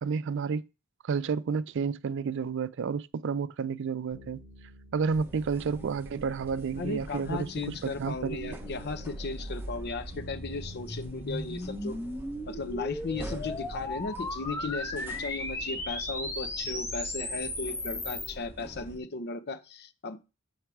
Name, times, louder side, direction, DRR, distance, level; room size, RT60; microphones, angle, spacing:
voice 1, 0.0-0.7 1.0-4.4 4.9-8.6, right 5 dB, 60° right, 0.4 m, -31 dB
sound 1, 4.1-16.0, left 2 dB, 75° left, 5.0 m, -51 dB
sound 2, 5.1-19.0, right 1 dB, 10° right, 0.9 m, -45 dB
voice 2, 6.8-12.0 12.5-20.2, left 3 dB, 50° left, 0.7 m, -36 dB
sound 3, 8.4-18.3, left 1 dB, 15° left, 1.1 m, -37 dB
7.3 x 4.6 x 4.7 m
head